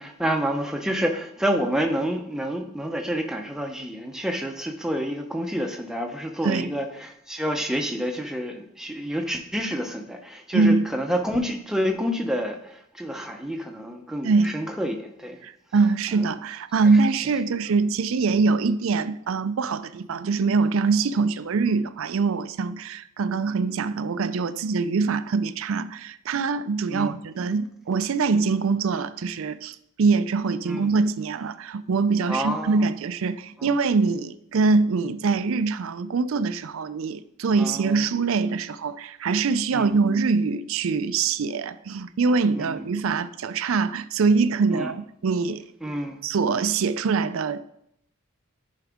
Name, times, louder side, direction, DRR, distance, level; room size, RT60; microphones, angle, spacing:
voice 1, 0.0-15.4 16.1-16.3 16.8-16.9 21.7-21.8 23.5-23.6 26.9-27.1 30.6-30.9 32.3-32.9 33.6-33.7 37.6-38.0 39.7-40.0 42.6-42.8 44.7-44.9 45.8-46.2, equal, ahead, 0.7 m, -28 dB
voice 2, 10.5-10.9 14.2-14.5 15.4-45.6 46.2-47.6, right 4 dB, 65° right, 0.4 m, -23 dB
10.5 x 4.7 x 3.5 m
head